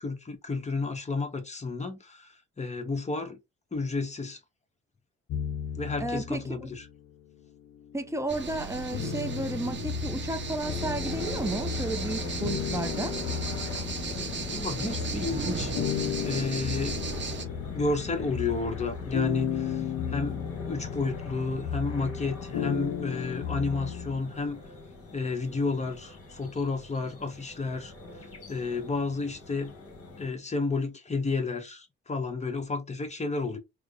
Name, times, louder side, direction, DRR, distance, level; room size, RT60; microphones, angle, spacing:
voice 1, 0.0-3.4 3.7-4.4 5.7-6.9 14.5-15.7 16.2-17.0 17.7-24.6 25.1-27.9 28.5-29.7 30.2-33.6, left 3 dB, 20° left, 1.0 m, -31 dB
sound 1, 5.3-7.0 7.6-24.2, left 8 dB, 65° left, 0.5 m, -35 dB
voice 2, 6.0-6.7 7.9-13.2, right 2 dB, 10° right, 0.6 m, -33 dB
sound 2, 8.3-17.4, right 5 dB, 40° right, 0.8 m, -36 dB
sound 3, 10.6-30.3, left 3 dB, 50° left, 1.7 m, -41 dB
3.4 x 2.1 x 3.6 m
cardioid pair, 90°, 30 cm